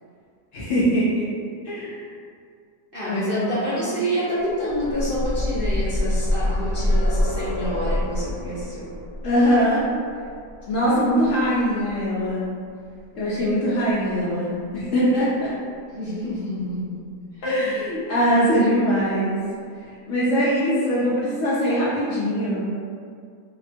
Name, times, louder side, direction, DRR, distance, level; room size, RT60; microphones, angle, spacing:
voice 1, 0.5-1.3 1.6-2.0 3.1-3.9 9.2-9.9 10.7-12.5 13.1-15.5 17.4-19.4 20.1-22.7, equal, 65° left, -8 dB, 0.8 m, -22 dB
voice 2, 2.9-8.9 15.9-17.0 17.3-17.8, equal, 60° right, -12 dB, 0.5 m, -28 dB
sound 1, 4.5-12.3 13.4-13.5 13.9-14.0, left 1 dB, 25° right, 1.1 m, -26 dB
2.8 x 2.1 x 2.6 m, 2.2 s
omnidirectional pair, 1.7 m